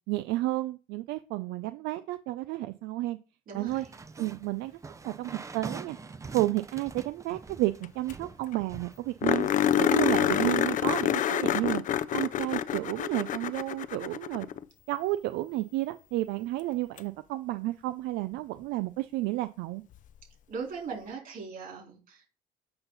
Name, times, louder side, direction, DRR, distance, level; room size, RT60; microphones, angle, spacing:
voice 1, 0.1-3.2 3.5-3.9 4.2-4.7 5.0-6.0 6.3-9.5 9.8-11.8 12.1-14.5 14.9-19.8, right 17 dB, 90° right, 12 dB, 0.4 m, -31 dB
voice 2, 3.5-3.9 20.5-22.4, right 5 dB, 60° right, 1 dB, 4.0 m, -39 dB
sound 1, 3.7-9.5, right 4 dB, 20° right, 0.5 m, -44 dB
sound 2, 7.8-7.9 8.1-8.2 8.5-8.6 9.2-14.6 17.0-17.1 19.9-20.0, left 10 dB, 50° left, 0.5 m, -27 dB
7.8 x 5.5 x 4.0 m, 0.35 s
cardioid pair, 110°, 17 cm